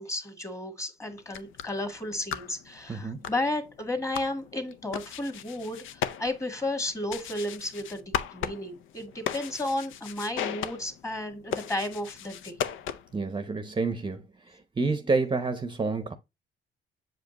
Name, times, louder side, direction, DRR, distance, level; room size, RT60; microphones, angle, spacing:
voice 1, 0.0-12.7, left 1 dB, 15° left, 1.7 m, -33 dB
sound 1, 1.2-13.3, left 9 dB, 80° left, 0.6 m, -37 dB
voice 2, 13.1-16.1, right 4 dB, 25° right, 0.7 m, -29 dB
7.5 x 5.0 x 2.9 m
cardioid pair, 90°, 20 cm